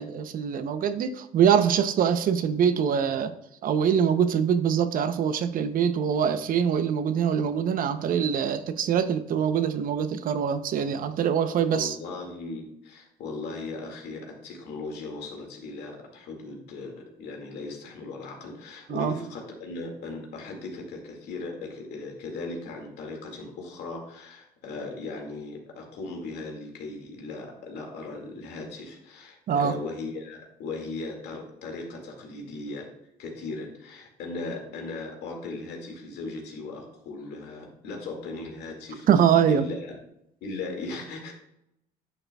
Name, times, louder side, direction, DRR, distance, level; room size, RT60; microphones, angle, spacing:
voice 1, 0.0-3.3 3.6-11.9 18.9-19.1 29.5-29.7 39.1-39.6, right 8 dB, 55° right, 10 dB, 0.7 m, -24 dB
voice 2, 11.7-32.9 33.2-39.1 39.5-40.0 40.4-41.3, left 3 dB, 75° left, 1 dB, 2.1 m, -38 dB
10.0 x 6.6 x 2.3 m, 0.80 s
cardioid pair, 110°, 17 cm